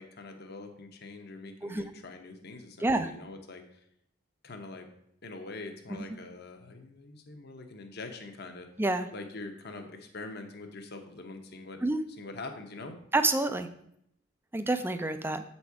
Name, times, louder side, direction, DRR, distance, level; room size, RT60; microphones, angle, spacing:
voice 1, 0.0-3.8 4.4-4.9 5.2-8.7 9.1-11.8 12.2-13.0, left 3 dB, 50° left, 5 dB, 0.9 m, -44 dB
voice 2, 13.1-13.7 14.5-15.4, right 2 dB, 10° right, 10 dB, 0.4 m, -28 dB
7.8 x 4.2 x 4.7 m, 0.73 s
head